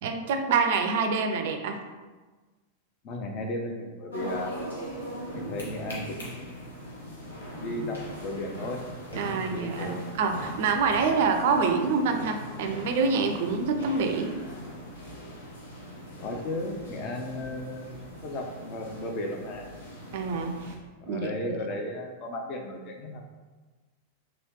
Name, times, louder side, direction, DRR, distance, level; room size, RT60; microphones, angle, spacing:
voice 1, 0.0-1.8 9.2-14.4 20.1-20.7 21.1-21.6, right 4 dB, 55° right, 6 dB, 0.3 m, -26 dB
voice 2, 3.0-4.5 5.3-6.7 7.6-8.8 9.1-10.0 16.2-19.7 21.0-23.3, left 1 dB, 40° left, 2 dB, 0.5 m, -35 dB
sound 1, 4.1-20.8, equal, 70° left, 0.9 m, -40 dB
3.1 x 2.7 x 3.0 m, 1.3 s
figure-of-eight pair, 90°, 0 cm